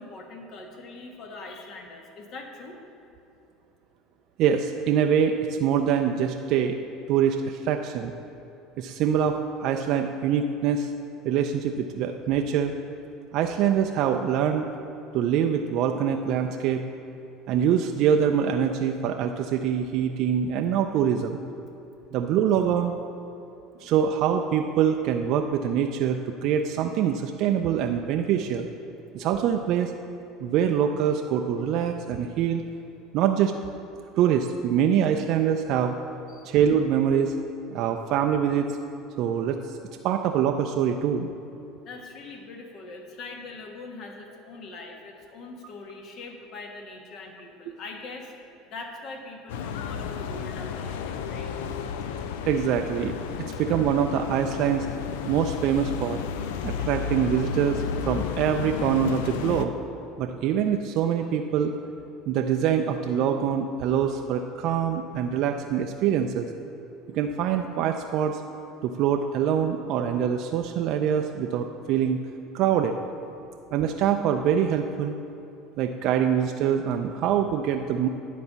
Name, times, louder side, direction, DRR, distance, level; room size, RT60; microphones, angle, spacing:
voice 1, 0.0-2.8 36.3-36.6 41.8-48.3 48.7-51.6 53.5-53.6, left 3 dB, 55° left, 2 dB, 1.4 m, -42 dB
voice 2, 4.4-6.8 7.1-8.1 8.8-10.9 11.2-12.7 13.3-14.7 15.1-16.8 17.5-21.4 22.1-22.9 23.8-28.7 29.1-29.9 30.4-32.6 33.1-33.5 34.2-35.9 36.4-37.3 37.7-38.7 39.2-39.8 40.0-41.3 52.5-53.1 53.6-54.9 55.3-56.2 56.6-59.7 60.2-61.7 62.3-66.5 67.1-68.4 68.8-72.2 72.5-73.0 73.7-75.2 75.8-78.1, right 8 dB, 60° right, 4 dB, 0.4 m, -24 dB
sound 1, 49.5-59.7, left 6 dB, 80° left, 0.4 m, -32 dB
10.0 x 4.1 x 7.0 m, 2.8 s
supercardioid pair, 90°, 0 cm